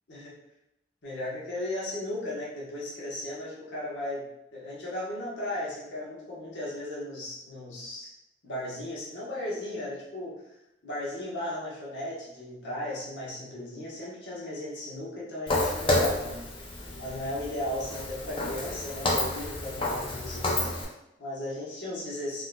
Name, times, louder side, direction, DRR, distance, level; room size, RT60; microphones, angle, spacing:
voice 1, 1.0-4.2 4.5-8.1 8.4-10.3 10.8-16.4 17.0-22.4, left 1 dB, 85° left, -7 dB, 1.1 m, -36 dB
Walk footsteps, 15.5-20.8, left 1 dB, 30° left, 0.4 m, -30 dB
3.6 x 2.5 x 2.2 m, 0.85 s
head